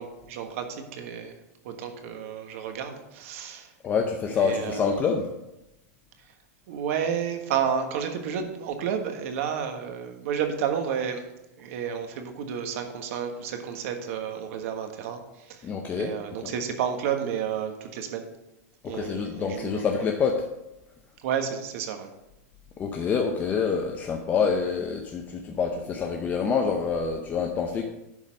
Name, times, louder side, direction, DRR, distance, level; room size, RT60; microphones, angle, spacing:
voice 1, 0.0-1.4 1.6-3.7 4.3-5.0 6.2-6.3 6.7-11.3 11.6-18.3 18.8-20.1 21.2-22.1, right 8 dB, 60° right, 6 dB, 1.4 m, -31 dB
voice 2, 3.8-5.3 15.6-16.1 16.4-16.5 18.8-20.5 22.8-27.9, left 5 dB, 20° left, 3 dB, 0.6 m, -26 dB
11.0 x 4.0 x 5.2 m, 0.92 s
supercardioid pair, 150°, 8 cm